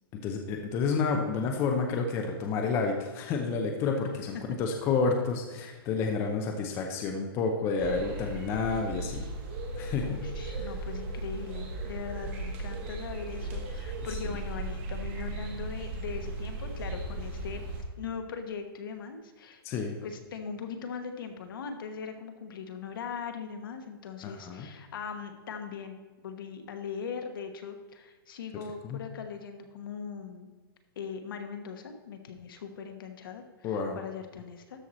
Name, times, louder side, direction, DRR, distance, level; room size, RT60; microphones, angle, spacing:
voice 1, 0.2-9.3 9.7-10.7 19.6-20.0 24.2-24.7 28.8-29.0 33.6-34.0, left 4 dB, 20° left, 3 dB, 0.7 m, -30 dB
sound 1, 7.8-17.8, right 2 dB, 30° right, 1.6 m, -37 dB
voice 2, 10.0-17.6 18.0-19.6 20.0-30.5 30.9-34.8, left 6 dB, 60° left, 6 dB, 1.2 m, -40 dB
13.0 x 4.7 x 4.2 m, 1.3 s
hypercardioid pair, 165°, 13 cm